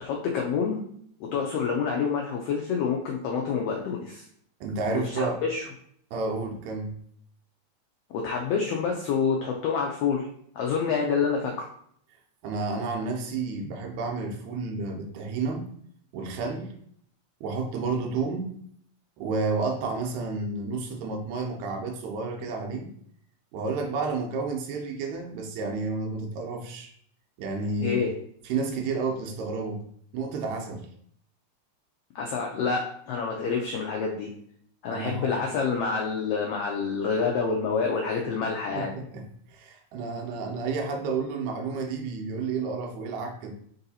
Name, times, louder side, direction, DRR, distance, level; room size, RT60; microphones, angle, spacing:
voice 1, 0.0-0.8 1.2-4.3 4.9-5.6 8.1-10.3 10.5-11.7 27.8-28.1 32.1-34.3 34.8-38.9, left 5 dB, 90° left, 0 dB, 1.4 m, -27 dB
voice 2, 4.6-5.4 6.1-7.0 12.4-15.7 16.1-16.7 17.4-18.5 19.2-22.9 23.5-26.9 27.4-28.0 28.4-29.8 30.1-30.9 34.9-35.3 38.7-43.5, right 4 dB, 80° right, 2 dB, 2.0 m, -31 dB
4.7 x 2.7 x 4.0 m, 0.64 s
omnidirectional pair, 3.4 m